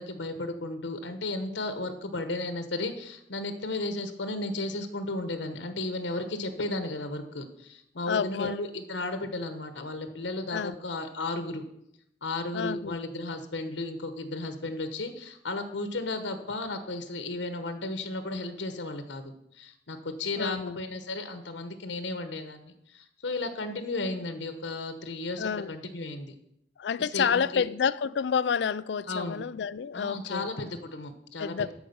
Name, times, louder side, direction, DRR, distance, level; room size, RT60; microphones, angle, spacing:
voice 1, 0.0-11.6 12.2-26.3 27.0-27.6 29.1-29.4 29.9-31.7, left 2 dB, 90° left, 1.1 m, -34 dB
voice 2, 8.1-8.6 10.5-10.7 12.5-13.0 20.4-20.8 25.4-25.8 26.8-30.5 31.4-31.7, left 6 dB, 75° left, 0.4 m, -29 dB
13.0 x 4.9 x 7.0 m
head